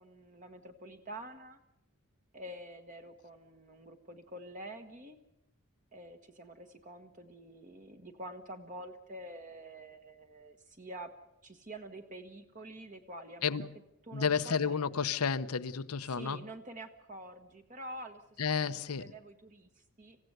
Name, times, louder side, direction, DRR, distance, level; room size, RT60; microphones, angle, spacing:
voice 1, 0.0-1.6 2.3-5.2 5.9-11.1 11.4-13.7 14.0-14.8 16.0-20.2, right 1 dB, 35° right, 1.3 m, -47 dB
voice 2, 14.1-16.4 18.4-19.0, left 6 dB, 90° left, 0.8 m, -31 dB
26.5 x 16.0 x 8.0 m
head